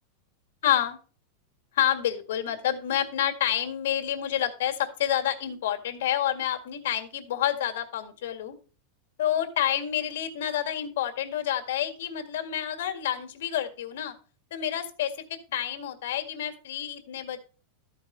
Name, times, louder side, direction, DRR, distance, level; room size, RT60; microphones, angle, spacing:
voice 1, 0.6-1.0 1.7-8.5 9.2-14.1 14.5-17.4, left 11 dB, 80° left, 6 dB, 1.9 m, -28 dB
13.0 x 4.9 x 5.4 m, 0.38 s
supercardioid pair, 170°, 0 cm